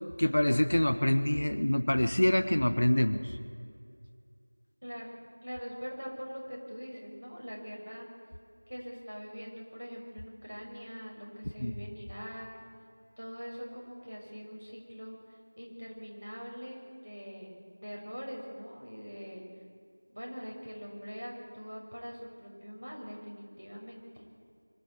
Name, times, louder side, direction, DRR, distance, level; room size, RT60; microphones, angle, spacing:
voice 1, 0.2-3.2 11.6-11.7, left 1 dB, 25° left, 12 dB, 0.4 m, -25 dB
voice 2, 4.8-5.1 5.4-8.1 8.7-12.5 13.2-17.5 17.8-19.4 20.1-24.2, equal, 70° right, -1 dB, 6.0 m, -43 dB
23.5 x 13.5 x 8.3 m, 2.3 s
figure-of-eight pair, 180°, 0 cm